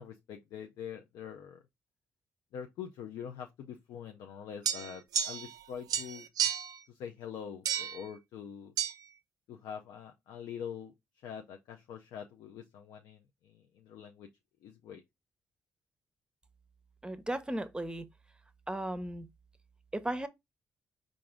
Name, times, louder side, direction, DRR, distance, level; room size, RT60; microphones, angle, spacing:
voice 1, 0.0-1.6 2.5-6.3 6.9-8.7 9.5-10.9 11.2-14.3 14.6-15.0, left 8 dB, 70° left, 0.4 m, -44 dB
sound 1, 4.7-5.6 5.9-6.8 7.7-8.0 8.8-8.9, right 8 dB, 65° right, 0.4 m, -32 dB
voice 2, 17.0-18.1 18.7-19.3 19.9-20.3, right 1 dB, 15° right, 0.7 m, -35 dB
4.7 x 2.5 x 3.5 m
hypercardioid pair, 45°, 7 cm